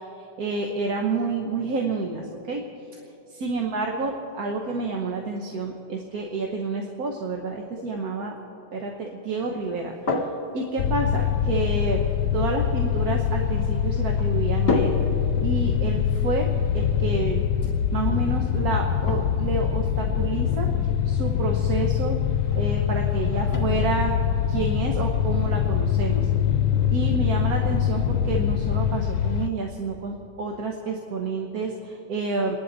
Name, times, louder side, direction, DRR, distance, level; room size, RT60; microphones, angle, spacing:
voice 1, 0.4-2.6 3.3-8.3 8.7-10.2 10.5-12.0 12.3-15.0 15.4-17.4 17.9-20.7 21.0-22.2 22.5-24.1 24.5-26.3 26.9-32.6, right 3 dB, 55° right, 2 dB, 1.4 m, -29 dB
sound 1, 9.6-27.7, left 2 dB, 45° left, 2.1 m, -36 dB
sound 2, 10.8-29.5, left 9 dB, 80° left, 1.3 m, -24 dB
29.5 x 11.0 x 4.0 m, 2.9 s
omnidirectional pair, 2.1 m